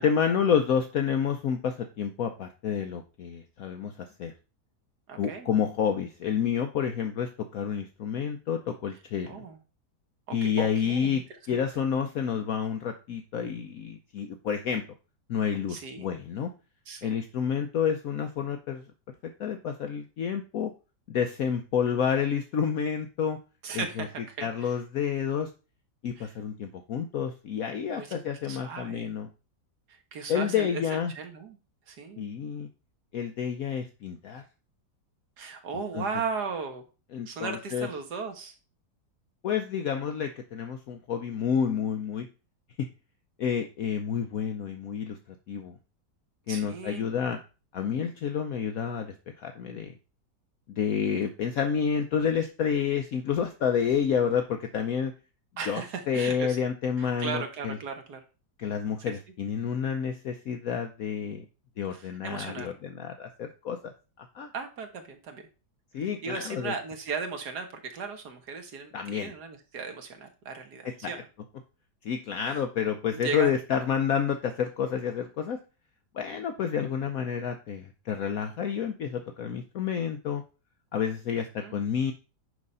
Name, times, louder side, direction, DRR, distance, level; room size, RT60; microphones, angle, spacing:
voice 1, 0.0-4.3 5.2-9.4 10.3-11.2 11.5-14.8 15.3-16.5 17.0-18.8 19.2-20.7 21.1-23.4 23.7-24.1 24.4-25.5 26.0-29.3 30.3-31.1 32.2-32.7 33.1-34.4 35.9-36.0 37.1-37.9 39.4-42.3 42.8-42.9 43.4-45.2 45.5-45.7 46.5-47.4 47.7-49.9 50.8-55.1 55.7-55.8 56.1-57.8 58.6-61.4 61.8-63.9 64.2-64.5 65.9-66.7 68.9-69.3 71.0-71.1 72.0-75.6 76.1-80.4 80.9-82.1, left 7 dB, 60° left, 6 dB, 1.1 m, -29 dB
voice 2, 5.1-5.5 9.3-9.6 10.3-11.2 11.5-11.6 15.7-16.1 16.9-17.1 23.6-24.7 26.2-26.3 27.9-28.2 28.5-29.2 29.9-30.8 31.1-31.6 31.9-32.3 35.4-36.8 37.3-38.5 46.5-47.1 55.6-56.6 57.0-58.2 61.9-62.8 64.5-65.5 66.0-71.3 72.5-72.6 73.1-73.6 81.6-81.8, right 5 dB, 70° right, 6 dB, 1.8 m, -37 dB
9.7 x 3.7 x 5.4 m, 0.32 s
omnidirectional pair, 1.8 m